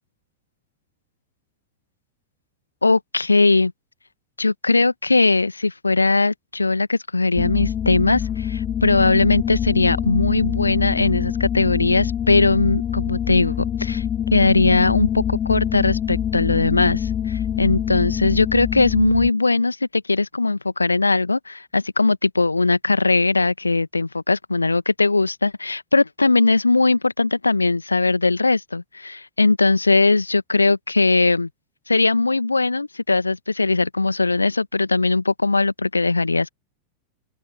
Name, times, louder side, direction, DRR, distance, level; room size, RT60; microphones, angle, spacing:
voice 1, 2.8-3.7 4.4-14.0 14.3-31.5 31.9-36.5, left 3 dB, 80° left, 1.5 m, -19 dB
sound 1, 7.4-19.3, left 9 dB, 25° left, 1.8 m, -25 dB
open air
figure-of-eight pair, 90°, 0 cm